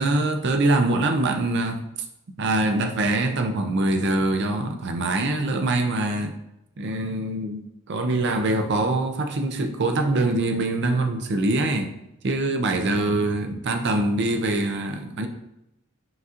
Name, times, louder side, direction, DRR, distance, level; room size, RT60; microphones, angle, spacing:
voice 1, 0.0-1.8 2.4-6.4 6.8-11.9 12.2-15.3, right 2 dB, 50° right, 6 dB, 0.5 m, -24 dB
5.8 x 2.9 x 2.4 m, 0.85 s
head